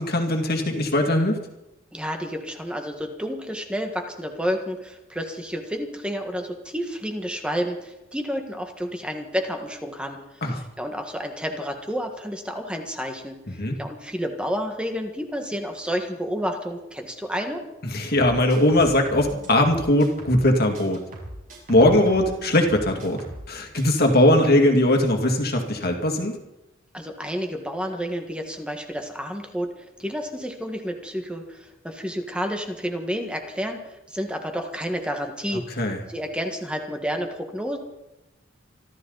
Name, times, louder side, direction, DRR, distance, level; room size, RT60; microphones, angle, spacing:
voice 1, 0.0-1.4 10.4-10.5 13.5-13.8 17.9-21.0 21.7-23.2 23.5-26.4 35.8-36.0, left 1 dB, 50° left, 3 dB, 2.3 m, -20 dB
voice 2, 1.9-13.4 13.8-17.6 26.9-37.8, equal, 5° right, 4 dB, 1.6 m, -30 dB
sound 1, 18.1-20.5 20.7-23.5 23.7-24.0, equal, 45° right, 6.5 m, -39 dB
25.5 x 13.0 x 4.0 m, 0.96 s
head